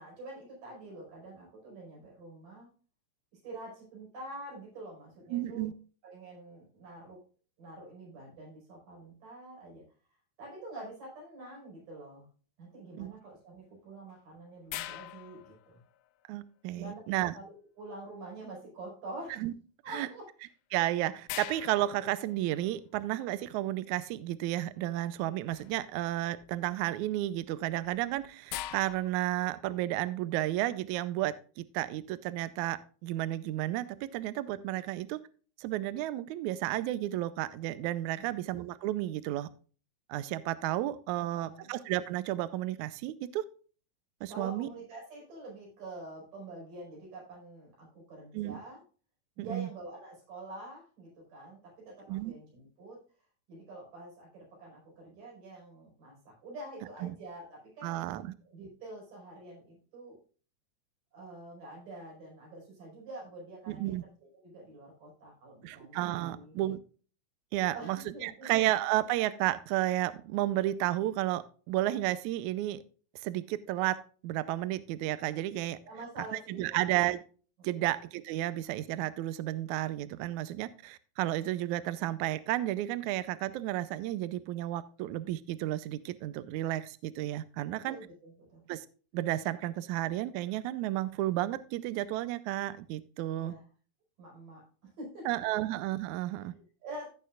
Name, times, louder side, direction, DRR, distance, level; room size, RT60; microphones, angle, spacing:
voice 1, 0.0-2.7 3.4-5.7 6.0-7.2 7.6-9.8 10.4-12.3 12.6-15.8 16.7-17.0 17.3-19.4 19.8-20.3 38.2-38.3 41.1-41.7 44.3-48.8 49.4-53.0 53.5-58.1 58.5-60.2 61.1-64.0 64.3-66.6 67.6-68.5 75.8-77.0 77.6-77.8 87.8-88.6 93.4-93.6 94.2-95.4 96.4-97.1, right 2 dB, 70° right, -3 dB, 6.6 m, -46 dB
voice 2, 5.3-5.7 13.0-13.1 16.3-17.3 19.4-19.5 19.9-20.1 20.7-35.2 35.6-39.5 40.1-43.4 44.2-44.7 48.3-48.6 49.4-49.7 52.1-52.3 57.0-57.1 57.8-58.3 63.7-64.0 65.6-66.8 67.5-72.8 73.2-74.0 74.2-75.8 76.5-77.2 77.6-88.0 88.7-88.9 89.1-93.5 95.3-96.5, right 15 dB, 85° right, 15 dB, 1.7 m, -32 dB
sound 1, 14.7-16.3 20.4-20.5 21.3-22.9 25.5-25.9 26.3-26.7 27.6-29.6, left 14 dB, 85° left, 1.7 m, -43 dB
16.0 x 6.6 x 2.4 m, 0.39 s
omnidirectional pair, 4.0 m